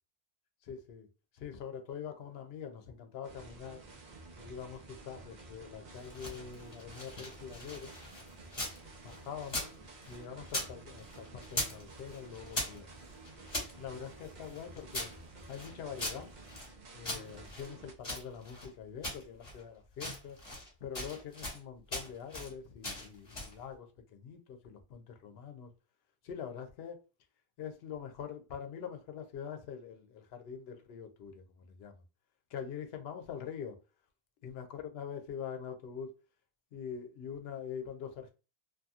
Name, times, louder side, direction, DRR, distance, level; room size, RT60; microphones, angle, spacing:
voice 1, 0.6-1.1 1.3-3.8 4.4-7.9 9.0-9.7 10.1-12.9 13.7-15.1 15.5-16.3 16.9-20.4 20.8-25.7 26.2-27.0 27.6-31.9 32.5-33.8 34.4-36.1 36.7-38.3, left 7 dB, 75° left, 0.8 m, -44 dB
sound 1, 3.2-17.9, right 3 dB, 50° right, 0.8 m, -52 dB
sound 2, 5.9-8.8 9.1-10.7 11.0-11.8 12.1-13.7 14.2-16.7 17.0-18.7 19.0-19.6 19.9-20.7 20.9-21.6 21.9-22.5 22.8-23.6, left 1 dB, 30° left, 1.3 m, -40 dB
2.7 x 2.6 x 2.3 m
omnidirectional pair, 1.0 m